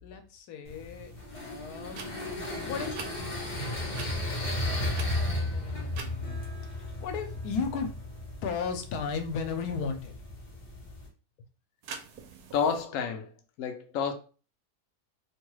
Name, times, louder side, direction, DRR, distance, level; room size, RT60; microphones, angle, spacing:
voice 1, 0.0-2.1 2.6-3.0 4.4-8.0 8.4-10.2, left 5 dB, 85° left, 1.1 m, -36 dB
sound 1, 0.7-11.1, left 1 dB, 35° left, 0.9 m, -35 dB
sound 2, 1.9-2.1 2.9-3.1 3.9-4.1 4.9-5.4 5.9-6.1 11.8-12.8, right 5 dB, 80° right, 1.1 m, -42 dB
voice 2, 12.5-13.3 13.6-14.1, left 6 dB, 70° left, 0.8 m, -29 dB
2.8 x 2.3 x 3.0 m
omnidirectional pair, 1.6 m